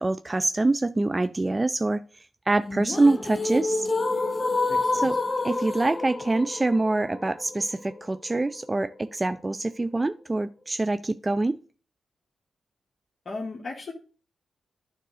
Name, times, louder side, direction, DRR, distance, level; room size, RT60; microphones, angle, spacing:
voice 1, 0.0-2.0 2.5-3.9 4.9-5.2 5.4-11.6, right 2 dB, 25° right, 0.4 m, -25 dB
sound 1, 2.7-8.7, left 3 dB, 30° left, 0.7 m, -28 dB
voice 2, 4.7-5.2 13.2-13.9, left 3 dB, 50° left, 1.4 m, -36 dB
9.2 x 3.6 x 6.3 m
supercardioid pair, 50°, 0 cm